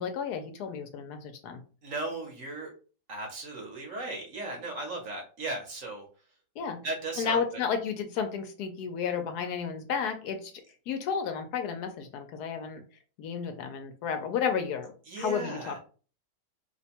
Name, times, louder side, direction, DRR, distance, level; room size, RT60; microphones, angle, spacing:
voice 1, 0.0-1.6 6.6-6.8 7.2-10.5 10.9-12.8 13.2-15.8, left 6 dB, 75° left, 6 dB, 1.1 m, -32 dB
voice 2, 1.8-2.7 3.1-6.0 6.8-7.6 15.1-15.8, right 2 dB, 55° right, 1 dB, 1.1 m, -36 dB
2.9 x 2.2 x 4.2 m, 0.38 s
omnidirectional pair, 1.8 m